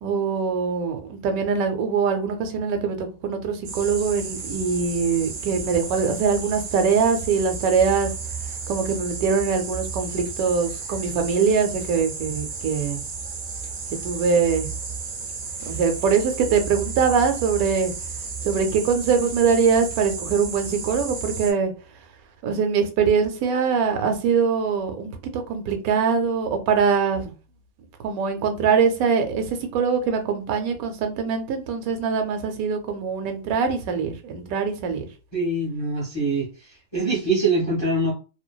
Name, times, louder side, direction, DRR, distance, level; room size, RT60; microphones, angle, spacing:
voice 1, 0.0-8.1 8.7-13.0 14.0-14.7 15.7-17.9 18.4-21.7 22.4-27.3 28.0-35.1, right 6 dB, 85° right, 1.0 m, -23 dB
sound 1, 3.6-21.5, right 5 dB, 65° right, 0.5 m, -33 dB
voice 2, 35.3-36.5 36.9-38.1, right 2 dB, 30° left, 0.5 m, -23 dB
2.5 x 2.2 x 2.2 m
omnidirectional pair, 1.5 m